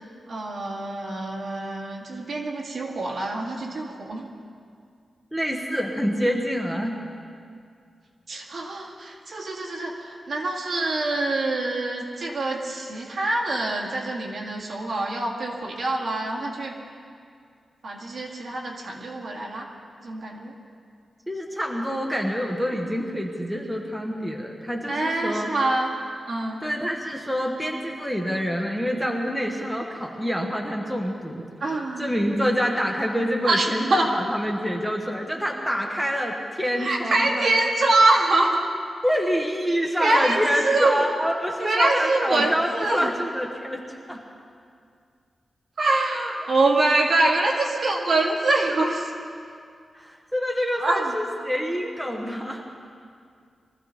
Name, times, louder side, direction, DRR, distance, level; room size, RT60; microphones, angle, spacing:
voice 1, 0.3-4.3 8.3-16.7 17.8-19.7 20.0-20.5 24.9-25.9 26.3-26.6 31.6-32.1 33.4-34.1 36.8-38.7 40.0-41.0 41.6-43.1 45.8-49.1 50.8-51.2, right 2 dB, 50° right, -1 dB, 2.1 m, -24 dB
voice 2, 5.3-7.0 21.3-25.5 26.6-37.6 39.0-44.2 50.0-52.6, equal, ahead, 0 dB, 1.1 m, -27 dB
23.0 x 14.5 x 4.0 m, 2.3 s
wide cardioid pair, 175°, 0 cm